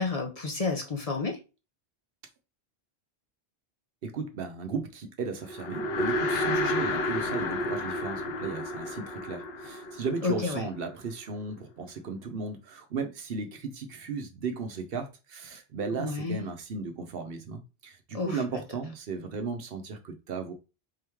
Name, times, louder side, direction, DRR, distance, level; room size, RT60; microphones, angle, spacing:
voice 1, 0.0-1.4 10.2-10.7 16.0-16.4 18.1-18.4, left 4 dB, 40° left, 0.7 m, -30 dB
voice 2, 4.0-20.5, right 4 dB, 70° right, 0.9 m, -35 dB
sound 1, 5.5-10.9, left 2 dB, 75° left, 1.0 m, -31 dB
3.7 x 3.1 x 3.4 m
omnidirectional pair, 1.1 m